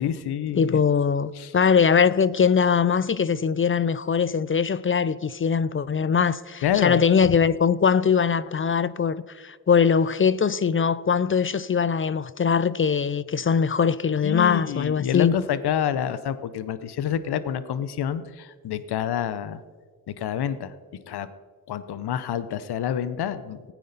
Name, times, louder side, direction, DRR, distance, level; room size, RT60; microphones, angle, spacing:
voice 1, 0.0-0.8 1.3-1.5 6.6-7.0 14.2-19.6 20.1-21.3 21.7-23.7, left 9 dB, 80° left, 0.7 m, -28 dB
voice 2, 0.6-15.3, left 6 dB, 35° left, 0.4 m, -21 dB
15.5 x 9.3 x 4.0 m
cardioid pair, 55°, 39 cm